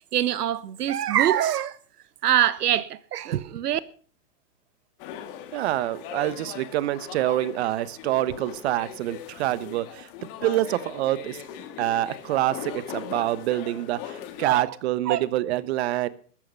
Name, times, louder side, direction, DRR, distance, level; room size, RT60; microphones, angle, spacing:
voice 1, 0.1-1.8 2.2-3.8 14.4-14.6 15.1-15.2, right 11 dB, 75° right, 1.4 m, -24 dB
sound 1, 5.0-14.6, left 10 dB, 35° left, 2.0 m, -40 dB
voice 2, 5.5-10.1 10.4-11.4 11.8-16.1, right 14 dB, 40° right, 1.1 m, -26 dB
13.5 x 13.5 x 5.5 m
hypercardioid pair, 155°, 47 cm